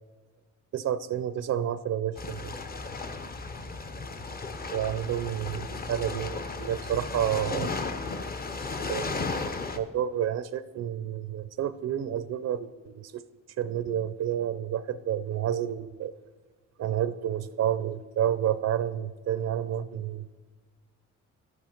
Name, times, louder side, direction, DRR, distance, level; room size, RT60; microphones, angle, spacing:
voice 1, 0.7-2.6 4.7-7.7 8.9-9.1 9.7-13.2 13.6-16.1 16.8-20.3, right 10 dB, 60° right, 14 dB, 0.5 m, -30 dB
sound 1, 2.2-9.8, left 3 dB, 30° left, 0.7 m, -34 dB
11.0 x 8.5 x 4.4 m, 1.3 s
cardioid pair, 90°, 30 cm